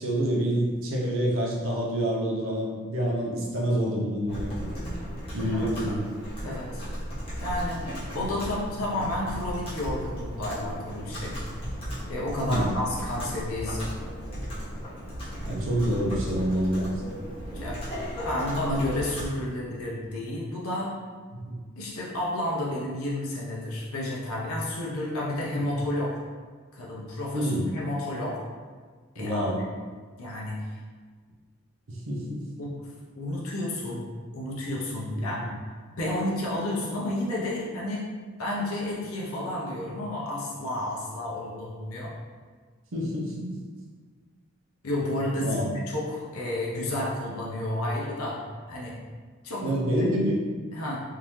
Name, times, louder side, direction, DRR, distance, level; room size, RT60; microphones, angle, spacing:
voice 1, 0.0-4.5 5.3-6.1 6.4-6.5 12.4-12.8 15.4-17.2 21.4-21.6 27.3-27.7 29.2-29.6 31.9-32.4 35.3-35.4 42.9-43.5 45.4-45.7 49.6-50.4, equal, 65° right, -3 dB, 0.8 m, -27 dB
Computer keyboard, 4.3-19.3, equal, 25° left, 1.2 m, -35 dB
voice 2, 6.4-6.8 7.4-7.8 8.1-11.3 12.1-13.9 17.5-17.8 18.2-21.0 21.8-26.2 26.7-28.4 29.1-29.5 30.2-30.8 32.6-32.7 33.2-34.0 34.3-38.1 38.4-42.1 44.8-48.9 49.4-49.6 50.0-50.1 50.7-51.0, left 1 dB, 75° left, -5 dB, 0.7 m, -31 dB
3.7 x 2.7 x 3.1 m, 1.5 s
head